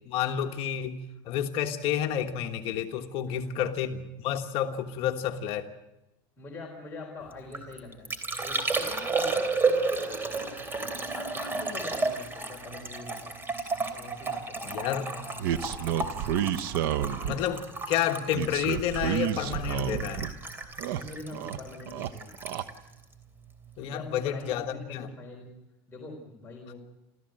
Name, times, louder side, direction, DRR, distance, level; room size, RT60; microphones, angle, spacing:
voice 1, 0.1-1.0 1.2-5.7 14.6-15.1 17.2-20.3 23.8-25.1, left 10 dB, 50° left, 5 dB, 1.5 m, -30 dB
voice 2, 3.3-3.6 6.4-10.6 11.1-13.4 13.9-16.2 16.7-17.0 20.9-22.3 23.8-25.5 25.9-26.8, left 3 dB, 20° left, 0 dB, 3.9 m, -44 dB
Liquid, 7.3-23.9 24.2-24.7, right 3 dB, 20° right, 3.2 m, -33 dB
sound 1, 15.4-17.5 18.3-20.3 20.6-21.6 21.9-22.6, right 10 dB, 75° right, 1.1 m, -30 dB
28.5 x 14.5 x 7.8 m, 0.96 s
supercardioid pair, 135°, 12 cm